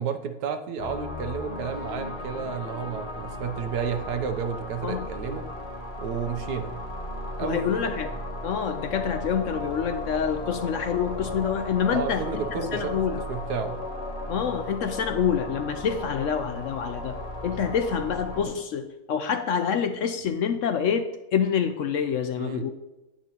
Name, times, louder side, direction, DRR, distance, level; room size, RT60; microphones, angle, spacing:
voice 1, 0.0-5.5 6.0-6.8 7.4-7.8 11.9-12.9 13.3-13.8 22.4-22.6, right 6 dB, 85° right, 8 dB, 1.4 m, -31 dB
sound 1, 0.8-18.4, left 1 dB, 45° left, 1.4 m, -36 dB
voice 2, 7.4-13.2 14.3-22.7, left 7 dB, 65° left, 8 dB, 0.8 m, -27 dB
9.9 x 8.6 x 3.0 m, 1.0 s
omnidirectional pair, 1.7 m